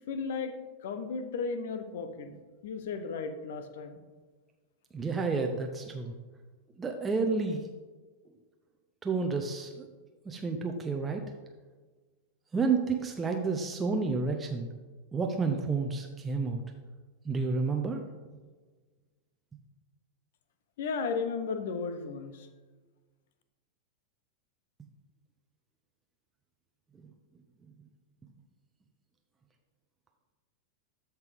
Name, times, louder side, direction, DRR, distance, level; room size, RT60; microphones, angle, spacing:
voice 1, 0.1-0.5 0.8-2.3 2.6-4.0 20.8-22.5, left 5 dB, 55° left, 9 dB, 0.8 m, -34 dB
voice 2, 4.9-6.1 6.8-7.6 9.0-9.9 10.3-11.2 12.5-14.7 15.1-16.6 17.3-18.0, right 4 dB, 15° right, 3 dB, 0.7 m, -30 dB
13.5 x 4.5 x 3.5 m, 1.3 s
figure-of-eight pair, 90°, 0 cm